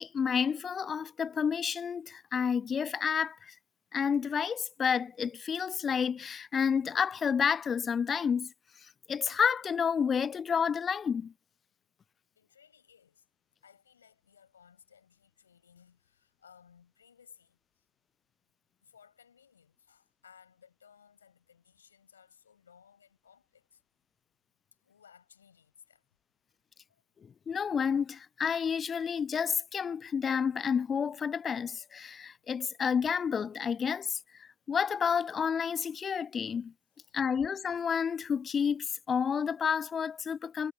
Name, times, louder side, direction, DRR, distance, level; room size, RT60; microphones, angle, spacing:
voice 1, 0.0-3.5 3.9-8.5 9.1-11.3 27.5-36.7 37.1-40.7, left 7 dB, 20° left, 0.3 m, -30 dB
voice 2, 12.4-13.2 13.6-17.6 18.8-23.8 24.8-26.0 26.9-27.0, left 7 dB, 70° left, 8.0 m, -60 dB
figure-of-eight pair, 90°, 0 cm